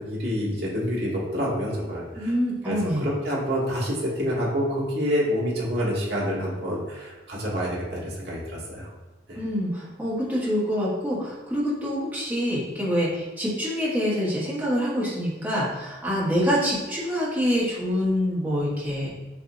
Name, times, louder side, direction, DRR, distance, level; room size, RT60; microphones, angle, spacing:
voice 1, 0.0-2.3 2.6-8.9 9.3-9.4, equal, 60° right, -5 dB, 1.4 m, -27 dB
voice 2, 2.1-3.1 9.3-19.1, equal, 10° right, -8 dB, 1.2 m, -26 dB
6.8 x 2.6 x 2.6 m, 1.1 s
head